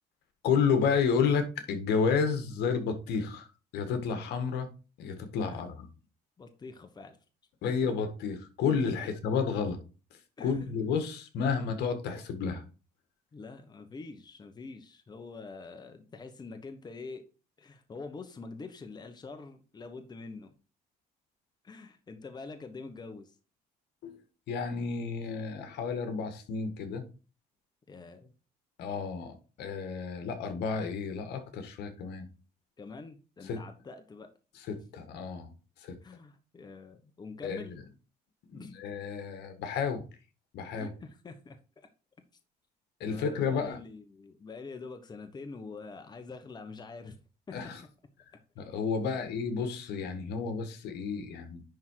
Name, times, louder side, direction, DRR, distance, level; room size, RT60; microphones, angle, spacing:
voice 1, 0.4-3.5 3.7-4.7 5.0-5.9 7.6-9.8 10.4-12.6 24.0-24.2 24.5-27.0 28.8-32.3 33.4-33.6 34.5-35.5 35.8-35.9 37.4-37.8 38.5-40.0 40.5-40.9 43.0-43.8 47.5-47.8 48.6-51.6, left 6 dB, 75° left, 1.7 m, -31 dB
voice 2, 6.4-7.2 7.7-7.8 9.0-9.1 10.4-10.8 13.3-17.2 17.6-20.5 21.6-23.3 27.9-28.3 32.8-34.3 36.0-37.8 38.5-38.7 40.7-41.9 43.0-47.2 47.5-47.6 49.0-49.1, left 4 dB, 25° left, 1.2 m, -45 dB
10.5 x 3.7 x 4.7 m
cardioid pair, 110°, 17 cm